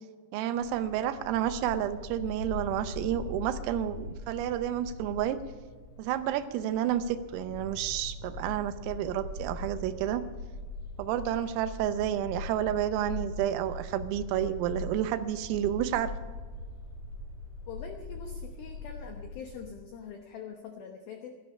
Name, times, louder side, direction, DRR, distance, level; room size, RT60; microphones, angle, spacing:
voice 1, 0.3-5.4 6.0-10.2 11.0-16.1, right 11 dB, 85° right, 11 dB, 3.5 m, -30 dB
Bark, 0.5-19.7, left 2 dB, 45° left, 3.3 m, -41 dB
voice 2, 17.7-21.3, left 6 dB, 85° left, 4 dB, 2.1 m, -43 dB
16.5 x 13.0 x 5.5 m, 1.5 s
omnidirectional pair, 5.9 m